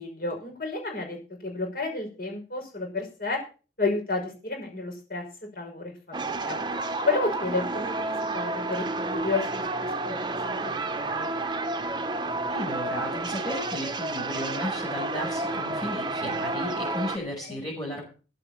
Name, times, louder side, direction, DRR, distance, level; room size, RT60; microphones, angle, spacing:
voice 1, 0.0-3.4 3.8-5.2 5.6-6.6 7.0-9.6 10.0-11.3 17.4-17.6, left 3 dB, 55° left, 2 dB, 5.9 m, -31 dB
sound 1, 6.1-17.2, right 2 dB, 25° right, 1.2 m, -30 dB
voice 2, 12.5-18.0, left 1 dB, 20° left, -4 dB, 6.2 m, -34 dB
14.5 x 7.6 x 7.3 m, 0.36 s
head